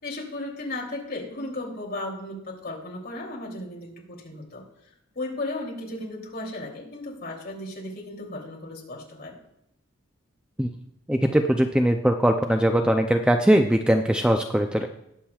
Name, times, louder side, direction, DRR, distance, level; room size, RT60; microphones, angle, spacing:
voice 1, 0.0-4.6 5.1-9.3, left 2 dB, 45° left, -2 dB, 3.0 m, -35 dB
voice 2, 11.1-14.9, right 1 dB, 5° right, 4 dB, 0.4 m, -21 dB
20.0 x 7.4 x 2.4 m, 0.80 s
head